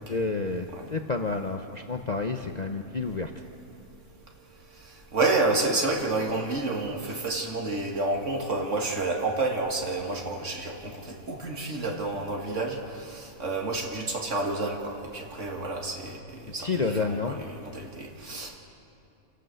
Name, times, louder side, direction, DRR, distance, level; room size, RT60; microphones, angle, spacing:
voice 1, 0.1-3.3 16.6-17.4, left 3 dB, 40° left, 5 dB, 0.7 m, -29 dB
voice 2, 5.1-18.6, right 2 dB, 55° right, 1 dB, 2.4 m, -29 dB
28.5 x 11.5 x 7.9 m, 2.8 s
omnidirectional pair, 1.5 m